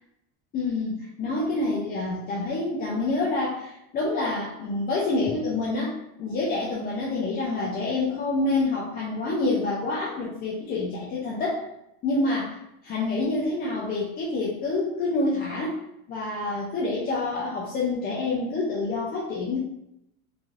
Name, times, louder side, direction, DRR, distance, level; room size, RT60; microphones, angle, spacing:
voice 1, 0.5-11.6 12.0-12.5 12.8-15.8 16.1-19.6, left 2 dB, 25° left, -5 dB, 0.4 m, -27 dB
3.2 x 2.5 x 2.4 m, 0.82 s
cardioid pair, 145°, 40 cm